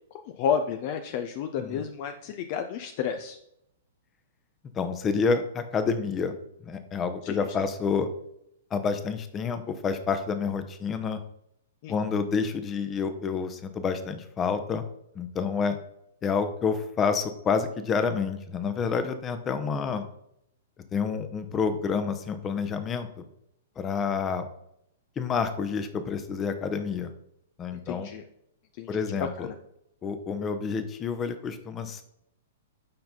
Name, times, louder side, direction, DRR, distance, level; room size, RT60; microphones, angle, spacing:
voice 1, 0.1-3.4 7.2-7.4 11.8-11.9 27.7-28.2 28.8-29.5, left 7 dB, 40° left, 7 dB, 0.6 m, -31 dB
voice 2, 4.7-6.3 6.7-8.1 8.7-11.2 11.9-14.8 15.1-15.8 16.2-20.1 20.9-23.2 23.8-24.4 25.2-27.1 27.6-28.1 28.9-29.5 30.0-32.0, left 5 dB, 20° left, 9 dB, 0.9 m, -28 dB
8.8 x 5.7 x 3.9 m, 0.76 s
figure-of-eight pair, 110°, 0 cm